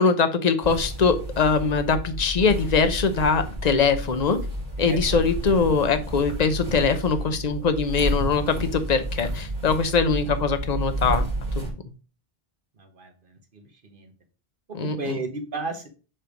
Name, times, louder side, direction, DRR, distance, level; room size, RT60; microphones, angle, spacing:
voice 1, 0.0-4.4 4.8-11.3 14.7-15.2, left 5 dB, 45° left, 9 dB, 0.8 m, -22 dB
sound 1, 0.6-11.7, right 1 dB, 40° right, 2.4 m, -31 dB
voice 2, 12.8-14.1 14.7-15.9, right 3 dB, 55° right, 4 dB, 1.4 m, -34 dB
7.5 x 3.3 x 5.1 m, 0.35 s
omnidirectional pair, 1.0 m